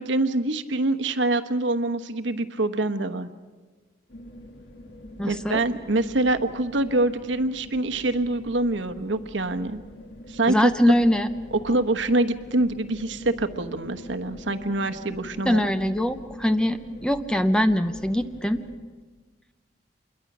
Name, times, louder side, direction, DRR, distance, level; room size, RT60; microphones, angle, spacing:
voice 1, 0.0-3.3 5.3-9.8 10.3-10.7 11.5-15.9, right 2 dB, 80° right, 9 dB, 1.1 m, -25 dB
sound 1, 4.1-18.8, equal, 70° left, 2.2 m, -44 dB
voice 2, 5.2-5.6 10.5-11.3 15.5-18.6, equal, 5° left, 9 dB, 0.7 m, -22 dB
27.0 x 22.0 x 6.1 m, 1.4 s
head